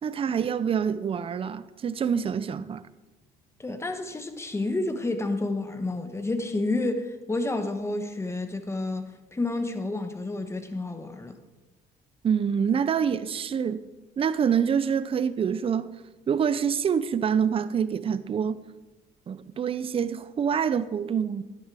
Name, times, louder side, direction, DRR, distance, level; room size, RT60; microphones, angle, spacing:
voice 1, 0.0-2.9 12.2-13.8 14.2-15.9 16.3-18.6 19.3-21.4, right 7 dB, 35° right, 0.6 m, -26 dB
voice 2, 3.6-11.3, left 2 dB, 15° left, 1.3 m, -30 dB
11.5 x 10.5 x 4.8 m
cardioid pair, 110°, 17 cm